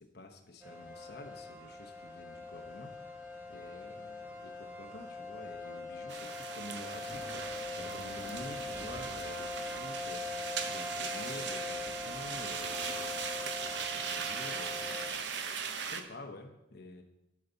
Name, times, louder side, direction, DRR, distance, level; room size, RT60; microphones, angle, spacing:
voice 1, 0.0-3.0 3.5-13.2 13.6-15.4 15.8-17.0, left 2 dB, 60° left, 3 dB, 0.9 m, -49 dB
sound 1, 0.6-15.1, left 3 dB, 10° right, 1.4 m, -42 dB
sound 2, 6.1-16.0, right 6 dB, 65° right, 0.8 m, -39 dB
11.5 x 5.6 x 4.0 m, 0.91 s
head